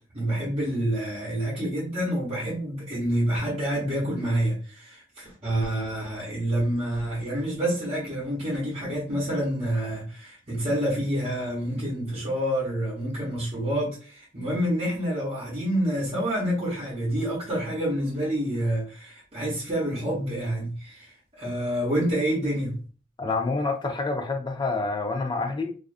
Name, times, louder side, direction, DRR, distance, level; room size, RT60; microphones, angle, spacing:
voice 1, 0.0-22.8, right 1 dB, 30° right, 0.9 m, -28 dB
voice 2, 23.2-25.7, left 3 dB, 20° left, 0.4 m, -27 dB
2.5 x 2.4 x 2.3 m
head